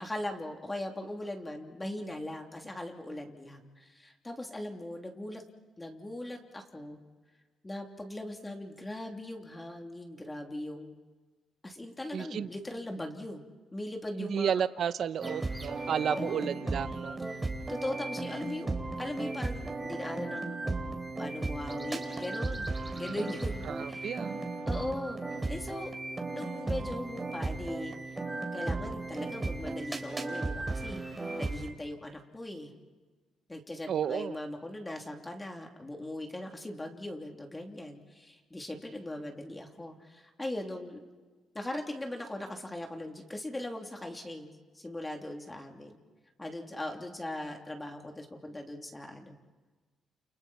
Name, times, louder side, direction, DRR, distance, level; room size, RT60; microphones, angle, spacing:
voice 1, 0.0-5.4 5.8-7.0 7.6-11.0 11.6-13.4 13.7-14.6 16.1-16.6 17.3-17.4 17.7-18.7 19.0-20.6 21.2-24.1 24.7-25.9 26.3-27.9 28.5-31.0 31.4-32.7 33.5-41.0 41.5-46.0 46.4-49.4, left 1 dB, 15° left, 2 dB, 3.0 m, -39 dB
voice 2, 12.1-12.5 14.2-17.2 22.9-23.3 23.7-24.4 33.9-34.4, right 8 dB, 60° right, 13 dB, 0.8 m, -32 dB
sound 1, 15.2-31.7, right 2 dB, 20° right, 3.5 m, -35 dB
30.0 x 29.0 x 4.3 m, 1.3 s
cardioid pair, 90°, 0 cm